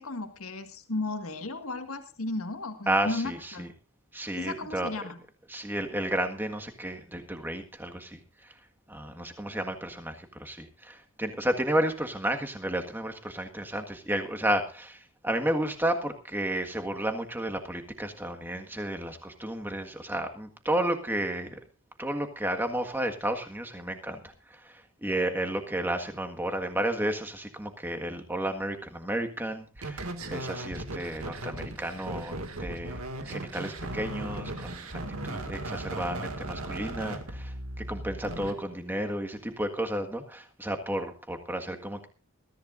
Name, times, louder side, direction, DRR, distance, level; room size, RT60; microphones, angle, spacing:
voice 1, 0.0-3.7 4.4-5.2, left 2 dB, 80° left, 7 dB, 1.8 m, -34 dB
voice 2, 2.9-3.7 4.1-4.9 5.5-8.5 8.9-21.6 22.0-42.1, right 1 dB, 10° right, 5 dB, 1.7 m, -32 dB
sound 1, 29.8-38.5, right 1 dB, 90° right, 2.2 m, -37 dB
22.0 x 14.0 x 2.6 m, 0.35 s
head